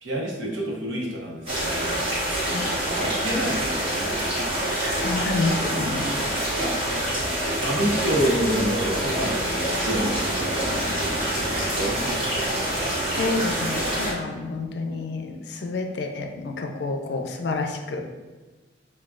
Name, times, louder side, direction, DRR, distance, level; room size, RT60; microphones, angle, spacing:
voice 1, 0.0-2.0 2.4-4.2 6.6-7.1 7.5-12.5, right 1 dB, 90° right, -2 dB, 0.9 m, -29 dB
Burbling Brook, 1.5-14.1, right 1 dB, 30° right, 1.0 m, -26 dB
voice 2, 5.0-6.4 7.8-7.9 12.0-12.1 13.2-18.1, left 3 dB, 65° left, 4 dB, 0.4 m, -29 dB
5.9 x 2.3 x 2.4 m, 1.3 s
head